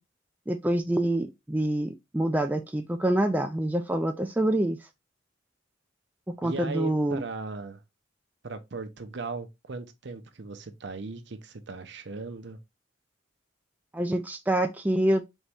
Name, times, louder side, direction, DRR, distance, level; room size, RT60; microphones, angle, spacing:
voice 1, 0.5-4.8 6.4-7.2 13.9-15.2, right 1 dB, 10° right, 0.4 m, -26 dB
voice 2, 6.4-7.8 8.4-12.6, right 3 dB, 60° right, 0.7 m, -37 dB
4.1 x 3.5 x 3.4 m
head